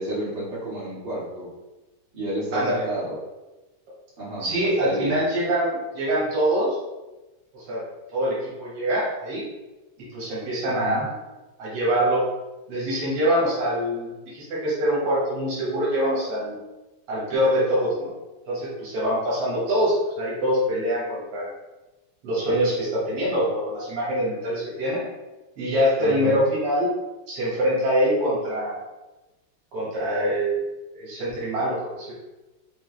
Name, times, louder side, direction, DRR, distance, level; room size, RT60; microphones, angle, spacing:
voice 1, 0.0-1.5 2.1-3.2 4.2-5.1 10.6-11.0 26.0-26.4, right 1 dB, 55° right, -10 dB, 2.1 m, -31 dB
voice 2, 2.5-2.8 4.4-6.8 7.5-7.8 8.1-9.5 10.1-11.2 11.6-12.2 12.7-16.6 17.1-18.1 18.5-21.5 22.2-25.0 25.6-26.9 27.3-28.8 29.7-30.6 30.9-32.1, equal, 85° right, -7 dB, 2.0 m, -24 dB
5.4 x 2.1 x 3.1 m, 1.1 s
omnidirectional pair, 2.4 m